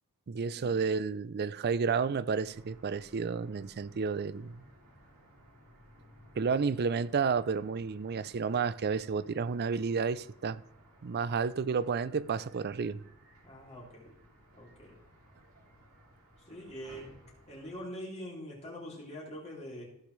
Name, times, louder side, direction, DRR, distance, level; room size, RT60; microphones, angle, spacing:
voice 1, 0.3-4.6 6.4-10.6 11.0-13.0, right 5 dB, 45° right, 0.4 m, -31 dB
sound 1, 2.4-17.8, right 1 dB, 80° right, 2.9 m, -59 dB
voice 2, 13.4-14.1 14.5-15.0 16.5-17.1 17.5-19.8, equal, 30° left, 2.7 m, -44 dB
15.0 x 7.1 x 3.2 m
head